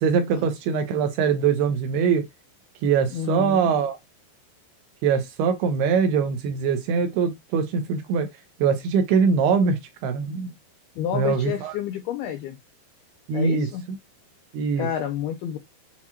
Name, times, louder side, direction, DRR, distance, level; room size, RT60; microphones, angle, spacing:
voice 1, 0.0-2.3 2.8-4.0 5.0-8.3 8.6-10.5 11.1-11.7 13.3-13.7 14.5-14.9, right 6 dB, 80° right, 2.4 m, -22 dB
voice 2, 3.1-3.7 11.0-12.6 13.3-13.8 14.8-15.6, left 10 dB, 90° left, 2.1 m, -29 dB
7.2 x 2.4 x 2.8 m
omnidirectional pair, 5.0 m